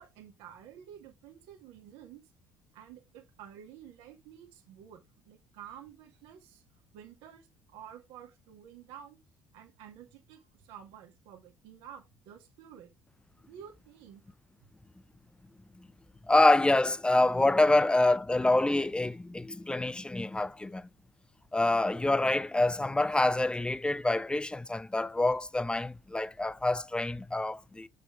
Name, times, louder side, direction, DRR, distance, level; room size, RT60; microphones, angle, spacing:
voice 1, 0.0-2.2 2.7-6.6 6.9-9.2 9.5-12.9 13.5-14.2, right 9 dB, 70° right, 2.0 m, -51 dB
voice 2, 16.3-20.9 21.5-27.9, left 2 dB, 10° left, 0.5 m, -26 dB
6.6 x 6.0 x 3.3 m
hypercardioid pair, 60°, 9 cm